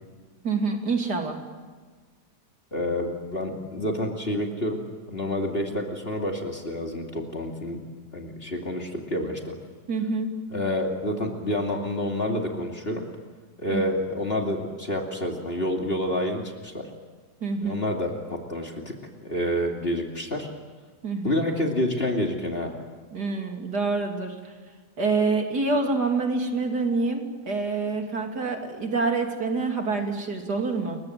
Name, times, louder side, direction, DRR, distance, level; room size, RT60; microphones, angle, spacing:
voice 1, 0.4-1.4 9.9-10.3 13.7-13.8 17.4-17.8 21.0-21.4 23.1-24.3 25.0-31.0, right 3 dB, 65° right, 3 dB, 3.6 m, -26 dB
voice 2, 2.7-4.8 5.1-7.8 8.1-9.5 10.5-13.0 13.6-16.9 17.6-18.9 19.2-20.5 21.2-22.7, left 1 dB, 35° left, 1 dB, 2.9 m, -28 dB
29.5 x 23.5 x 7.8 m, 1.5 s
omnidirectional pair, 1.9 m